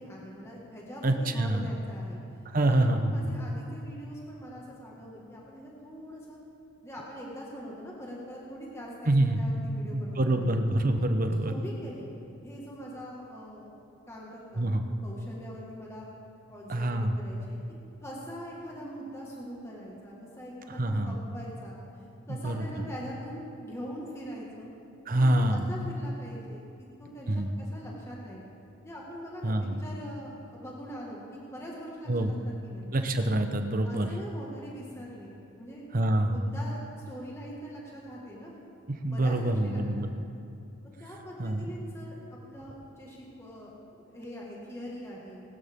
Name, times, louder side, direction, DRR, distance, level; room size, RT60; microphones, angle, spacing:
voice 1, 0.0-2.2 2.7-6.4 6.8-10.5 11.1-12.1 12.4-13.7 14.1-16.1 16.5-17.6 18.0-24.7 25.1-28.4 28.8-32.9 33.8-35.8 36.3-38.6 39.1-40.2 41.0-45.4, equal, 15° left, -4 dB, 1.8 m, -43 dB
voice 2, 1.0-1.7 2.5-3.3 9.1-9.4 9.9-11.5 14.6-14.8 16.7-17.2 20.7-21.2 22.3-22.7 25.1-25.7 27.3-27.5 29.4-29.8 32.1-32.3 32.9-34.1 35.9-36.4 39.0-40.1 41.4-41.7, right 1 dB, 40° right, 7 dB, 0.9 m, -26 dB
20.5 x 12.0 x 3.7 m, 2.6 s
head